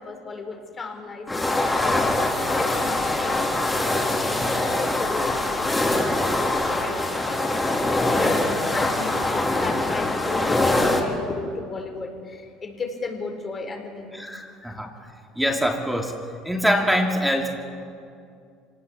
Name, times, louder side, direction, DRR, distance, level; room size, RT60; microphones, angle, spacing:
voice 1, 0.0-14.3 14.6-14.7, left 3 dB, 35° left, 4 dB, 4.5 m, -35 dB
sound 1, 1.3-11.0, left 2 dB, 15° left, 4.0 m, -23 dB
voice 2, 14.1-14.9 15.4-16.1 16.4-17.6, equal, 5° right, 1 dB, 2.9 m, -24 dB
26.0 x 18.5 x 7.2 m, 2.4 s
hypercardioid pair, 80°, 0 cm